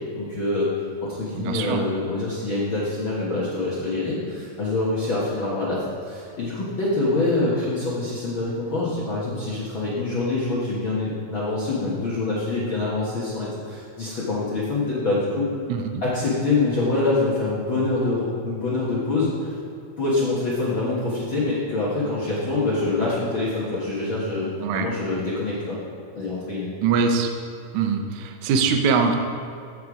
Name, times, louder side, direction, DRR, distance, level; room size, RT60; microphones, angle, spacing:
voice 1, 0.2-0.7 1.0-15.5 16.0-19.6 20.0-24.5 24.7-25.8 26.1-26.7, left 2 dB, 65° left, -7 dB, 1.2 m, -25 dB
voice 2, 1.3-1.8 15.7-16.0 24.6-24.9 26.8-27.3 27.7-29.2, right 5 dB, 85° right, 4 dB, 1.7 m, -22 dB
14.5 x 5.3 x 4.9 m, 2.5 s
omnidirectional pair, 4.5 m